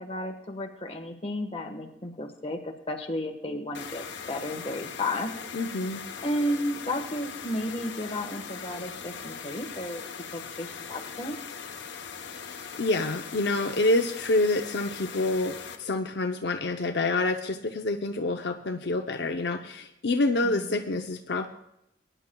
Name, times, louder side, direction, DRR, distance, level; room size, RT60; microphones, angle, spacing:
voice 1, 0.0-5.3 6.2-10.0 10.3-11.4 20.4-20.8, left 1 dB, 30° left, 3 dB, 1.3 m, -33 dB
sound 1, 3.7-15.8, left 6 dB, 90° left, 1.0 m, -40 dB
voice 2, 5.5-6.0 12.8-21.5, left 2 dB, 70° left, 5 dB, 0.6 m, -27 dB
20.5 x 10.0 x 2.3 m, 0.79 s
head